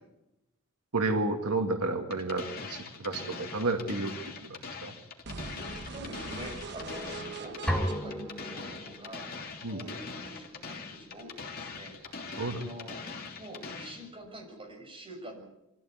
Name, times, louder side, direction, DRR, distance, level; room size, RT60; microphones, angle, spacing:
voice 1, 0.9-4.1 4.4-4.9 9.6-9.8 12.4-12.6, right 2 dB, 85° right, 5 dB, 2.2 m, -31 dB
sound 1, 2.1-14.1, left 4 dB, 45° left, 3.3 m, -42 dB
sound 2, 5.2-9.2, right 4 dB, 50° right, 1.3 m, -43 dB
voice 2, 5.6-11.9 12.3-13.0 13.4-15.4, equal, 25° right, 0 dB, 7.0 m, -46 dB
sound 3, 7.7-9.5, equal, 5° left, 2.4 m, -33 dB
24.5 x 14.5 x 9.6 m, 0.91 s
head